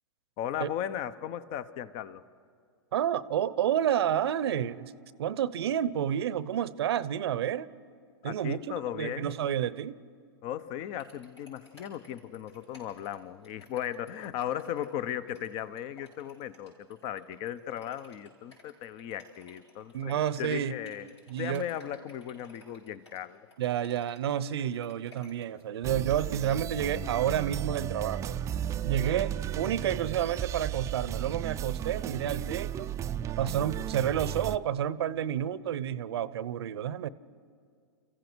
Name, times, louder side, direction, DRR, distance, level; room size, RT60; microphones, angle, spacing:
voice 1, 0.4-2.2 8.2-9.3 10.4-23.5, left 10 dB, 40° left, 15 dB, 0.9 m, -37 dB
voice 2, 2.9-4.9 5.2-7.7 8.2-10.0 19.9-20.7 21.3-21.6 23.6-28.4 28.8-32.9 33.4-37.1, right 10 dB, 70° right, 18 dB, 0.8 m, -30 dB
sound 1, 11.0-25.6, left 2 dB, 90° left, 7.2 m, -57 dB
sound 2, 25.8-34.6, right 10 dB, 20° right, 0.5 m, -34 dB
29.0 x 15.5 x 6.2 m, 2.3 s
hypercardioid pair, 115°, 14 cm